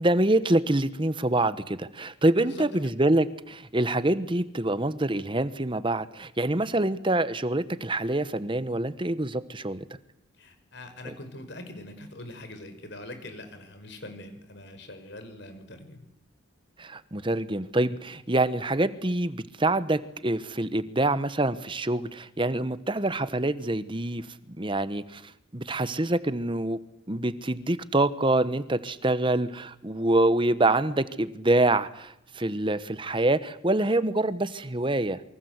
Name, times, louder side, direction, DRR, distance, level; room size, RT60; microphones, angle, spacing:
voice 1, 0.0-9.9 11.1-11.2 16.8-26.8 27.1-35.2, right 2 dB, 25° right, 14 dB, 1.2 m, -26 dB
voice 2, 2.4-2.9 10.4-16.0, left 1 dB, 60° left, 8 dB, 5.3 m, -43 dB
28.0 x 24.5 x 8.2 m, 0.79 s
head